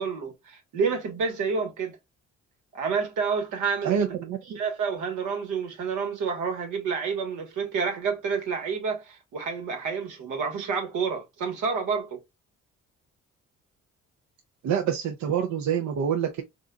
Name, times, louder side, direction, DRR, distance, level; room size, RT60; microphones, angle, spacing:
voice 1, 0.0-2.0 2.7-4.0 4.5-12.2, right 5 dB, 85° right, 1.3 m, -29 dB
voice 2, 3.8-4.6 14.6-16.4, right 8 dB, 65° right, 0.6 m, -26 dB
3.8 x 2.6 x 2.2 m
cardioid pair, 90°, 30 cm